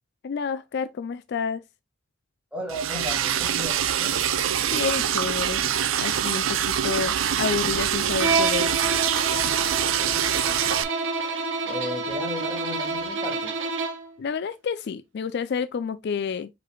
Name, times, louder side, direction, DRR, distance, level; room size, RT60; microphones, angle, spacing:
voice 1, 0.2-1.6 4.7-5.6 6.0-8.7 14.2-16.5, left 6 dB, 55° left, 0.4 m, -29 dB
voice 2, 2.5-4.2 10.0-10.8 11.6-13.6, left 1 dB, 5° right, 1.6 m, -35 dB
Liquid, 2.7-10.8, right 9 dB, 85° right, 0.5 m, -25 dB
Bowed string instrument, 8.2-14.1, right 3 dB, 70° right, 1.0 m, -28 dB
4.9 x 4.6 x 2.2 m
head